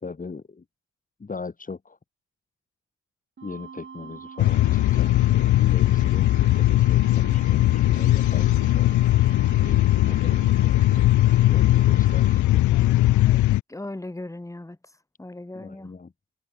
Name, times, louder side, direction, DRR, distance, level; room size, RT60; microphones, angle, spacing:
voice 1, 0.0-0.6 1.2-2.0 3.4-8.9 9.6-13.2 15.5-16.1, left 4 dB, 25° left, 3.4 m, -39 dB
sound 1, 3.4-12.4, right 6 dB, 40° right, 4.1 m, -42 dB
sound 2, 4.4-13.6, left 15 dB, 75° left, 0.8 m, -19 dB
voice 2, 13.3-14.8 15.2-15.9, left 2 dB, 10° left, 4.6 m, -37 dB
cardioid pair, 90°, 30 cm